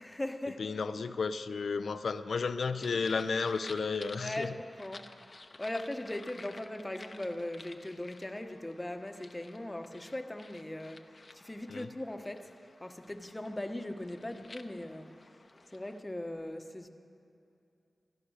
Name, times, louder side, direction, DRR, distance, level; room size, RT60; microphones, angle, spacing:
voice 1, 0.0-0.6 4.2-5.1 5.6-12.5 12.8-15.1 15.5-16.9, left 1 dB, 20° left, 6 dB, 1.2 m, -39 dB
voice 2, 0.6-4.5 11.7-11.9, left 4 dB, 75° left, 12 dB, 0.6 m, -33 dB
sound 1, 2.8-16.0, left 3 dB, 50° left, 0.9 m, -53 dB
16.5 x 12.0 x 6.4 m, 2.7 s
cardioid pair, 40°, 0 cm